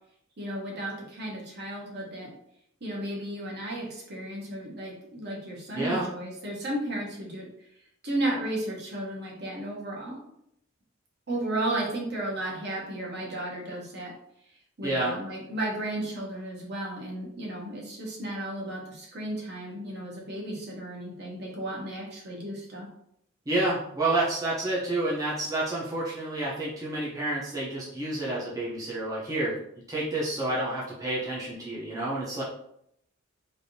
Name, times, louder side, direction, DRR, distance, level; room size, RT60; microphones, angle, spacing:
voice 1, 0.4-2.3 2.8-7.5 8.0-10.2 11.3-14.1 14.8-22.9, right 1 dB, 55° right, -3 dB, 1.0 m, -34 dB
voice 2, 14.8-15.1 23.5-29.6 29.9-32.4, right 2 dB, 15° right, -7 dB, 0.6 m, -29 dB
3.3 x 2.6 x 2.7 m, 0.74 s
head